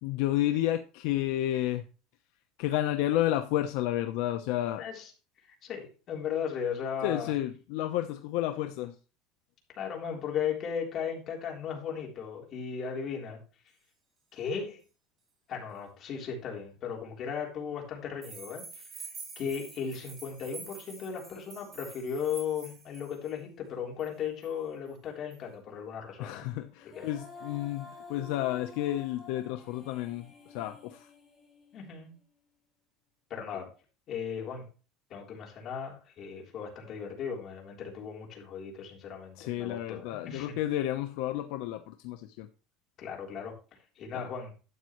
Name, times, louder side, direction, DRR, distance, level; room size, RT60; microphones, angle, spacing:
voice 1, 0.0-1.8 2.6-4.8 7.0-8.9 26.2-31.1 39.4-42.5 44.1-44.2, left 13 dB, 65° left, 7 dB, 0.8 m, -31 dB
voice 2, 4.8-5.1 5.4-7.3 9.7-13.4 14.3-14.8 15.5-18.8 19.4-26.5 27.0-27.1 31.7-32.1 33.3-33.7 34.1-34.6 35.1-40.5 43.0-43.5 44.0-44.5, left 7 dB, 35° left, -1 dB, 3.6 m, -36 dB
sound 1, 18.2-23.3 24.0-24.1 24.4-24.5 25.3-25.4, right 4 dB, 20° right, 4.3 m, -47 dB
Female singing, 26.8-32.0, left 3 dB, 5° left, 6.7 m, -50 dB
12.0 x 8.4 x 3.1 m, 0.34 s
cardioid pair, 165°, 0 cm